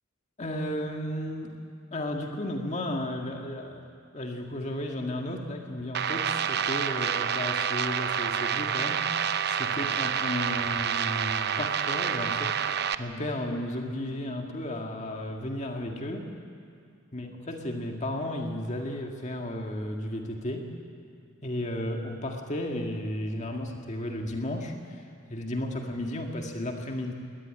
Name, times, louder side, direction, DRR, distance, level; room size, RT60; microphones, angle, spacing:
voice 1, 0.4-1.5 1.9-3.8 4.1-9.1 9.5-16.3 17.1-20.7 21.4-25.0 25.3-27.1, left 1 dB, 35° left, 2 dB, 1.8 m, -34 dB
sound 1, 5.9-12.9, right 8 dB, 55° right, 0.7 m, -28 dB
21.0 x 17.5 x 10.0 m, 2.4 s
head